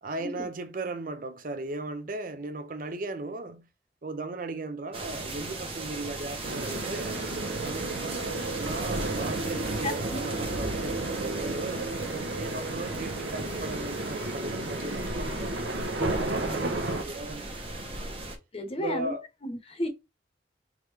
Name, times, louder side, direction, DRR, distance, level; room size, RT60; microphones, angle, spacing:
voice 1, 0.0-3.7 4.0-7.2 7.6-11.9 12.3-18.2 18.8-19.2, right 2 dB, 50° right, 0.6 m, -37 dB
sound 1, 4.9-18.4, right 2 dB, 30° right, 0.9 m, -38 dB
sound 2, 6.4-17.0, right 2 dB, 80° right, 0.9 m, -32 dB
voice 2, 9.8-10.2 18.5-19.1 19.4-19.9, left 1 dB, 30° left, 0.9 m, -33 dB
3.6 x 3.2 x 3.3 m
head